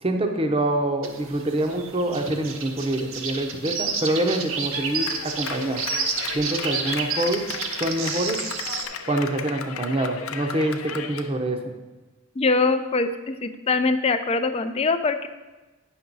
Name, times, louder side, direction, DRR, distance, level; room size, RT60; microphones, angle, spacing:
voice 1, 0.0-5.8 6.3-7.4 7.8-8.4 9.1-11.7, right 1 dB, 25° right, 5 dB, 0.7 m, -25 dB
sound 1, 1.0-8.9, right 5 dB, 65° right, 0.8 m, -30 dB
Clapping, 4.7-11.3, left 6 dB, 70° left, 0.6 m, -35 dB
voice 2, 12.4-15.3, left 3 dB, 30° left, 9 dB, 0.4 m, -23 dB
9.3 x 6.0 x 4.0 m, 1.2 s
head